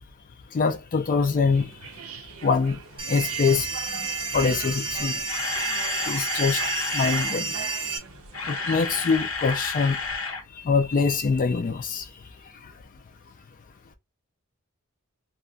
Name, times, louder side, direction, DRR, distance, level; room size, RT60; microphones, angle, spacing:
voice 1, 0.5-1.7 2.4-2.8 3.1-3.7 3.9-4.1 4.3-5.2 6.1-6.6 6.9-7.6 8.5-10.0 10.6-12.0, left 5 dB, 40° left, 0.3 m, -24 dB
sound 1, 1.5-9.2, right 6 dB, 75° right, 0.5 m, -43 dB
sound 2, 3.0-8.0, right 4 dB, 25° right, 0.7 m, -30 dB
Camera, 5.2-7.4 8.1-10.4 10.7-10.8 11.3-11.4, left 4 dB, 65° left, 0.8 m, -31 dB
2.3 x 2.1 x 3.7 m
head